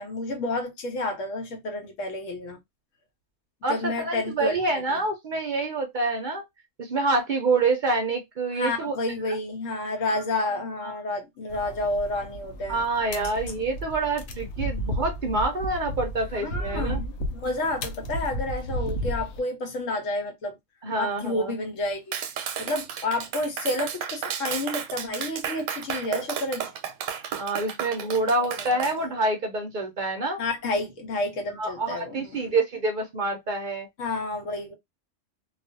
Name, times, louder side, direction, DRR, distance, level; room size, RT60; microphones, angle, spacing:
voice 1, 0.0-2.6 3.7-5.0 8.5-12.8 16.3-20.6 21.0-22.2 22.6-26.7 28.2-29.1 30.4-32.5 34.0-34.7, left 2 dB, 85° left, 1.2 m, -30 dB
voice 2, 3.6-6.4 6.8-9.0 9.3-9.4 10.8-10.9 11.6-11.7 12.7-17.0 20.8-21.5 27.4-30.4 31.6-33.9, right 3 dB, 55° right, 0.6 m, -27 dB
sound 1, 11.5-19.4, equal, 70° left, 0.9 m, -33 dB
Clapping, 22.1-29.0, right 8 dB, 90° right, 0.9 m, -33 dB
2.4 x 2.4 x 2.5 m
omnidirectional pair, 1.3 m